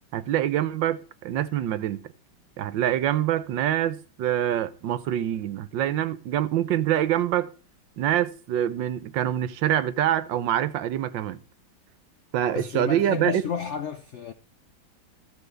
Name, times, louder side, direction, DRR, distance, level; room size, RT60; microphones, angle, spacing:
voice 1, 0.1-2.0 2.6-7.5 8.0-11.4 12.3-13.4, right 11 dB, 75° right, 1.5 m, -25 dB
voice 2, 12.5-14.3, left 7 dB, 80° left, 0.6 m, -31 dB
14.0 x 5.1 x 8.0 m
omnidirectional pair, 2.1 m